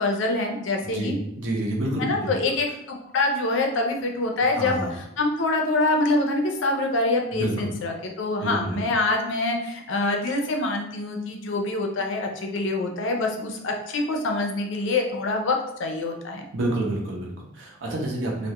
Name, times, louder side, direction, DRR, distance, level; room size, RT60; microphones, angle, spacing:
voice 1, 0.0-1.1 2.0-16.4, left 2 dB, 70° left, 2 dB, 0.4 m, -25 dB
voice 2, 0.8-2.3 4.5-5.0 7.3-7.7 8.4-8.8 16.5-18.5, right 1 dB, 70° right, -1 dB, 0.6 m, -28 dB
2.3 x 2.0 x 2.8 m, 0.81 s
head